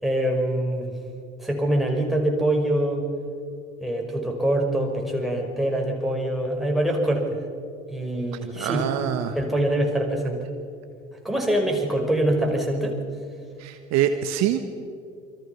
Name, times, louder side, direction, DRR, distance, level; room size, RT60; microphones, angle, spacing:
voice 1, 0.0-0.9 1.4-3.0 3.8-7.3 7.9-8.8 9.4-10.5 11.2-13.0, right 1 dB, ahead, 0 dB, 5.5 m, -24 dB
voice 2, 8.6-9.3 13.6-14.6, right 10 dB, 50° right, 8 dB, 1.4 m, -24 dB
28.0 x 24.0 x 5.9 m, 2.4 s
figure-of-eight pair, 60°, 33 cm